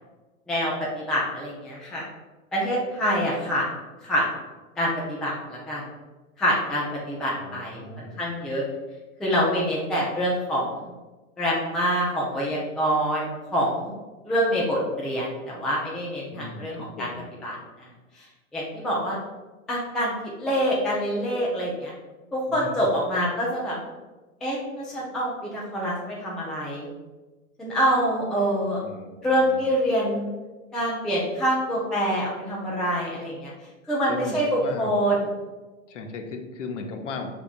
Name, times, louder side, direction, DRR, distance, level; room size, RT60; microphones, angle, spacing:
voice 1, 0.5-2.0 2.5-3.6 4.0-4.2 4.8-5.8 6.4-8.6 9.2-10.7 11.4-13.9 14.2-17.1 17.4-17.9 18.5-19.2 19.7-21.9 22.3-23.8 24.4-26.9 27.6-28.8 29.2-30.3 30.7-33.5 33.9-35.3, equal, ahead, -5 dB, 0.3 m, -26 dB
voice 2, 7.4-8.3 16.3-17.3 22.5-23.0 28.8-29.1 29.4-29.6 34.1-35.0 35.9-37.3, left 3 dB, 60° left, 4 dB, 0.8 m, -37 dB
5.7 x 3.6 x 2.4 m, 1.2 s
figure-of-eight pair, 100°, 42 cm